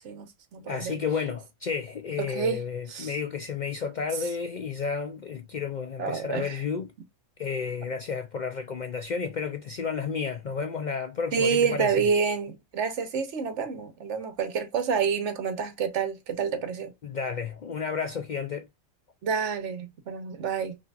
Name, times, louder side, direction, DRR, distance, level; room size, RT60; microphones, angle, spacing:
voice 1, 0.0-1.0 2.2-2.6 2.9-3.1 6.0-6.6 11.3-16.9 19.2-20.8, right 6 dB, 65° right, 1.1 m, -28 dB
voice 2, 0.6-6.9 7.4-12.1 17.0-18.7, left 5 dB, 60° left, 0.4 m, -32 dB
5.7 x 2.6 x 2.4 m
omnidirectional pair, 1.3 m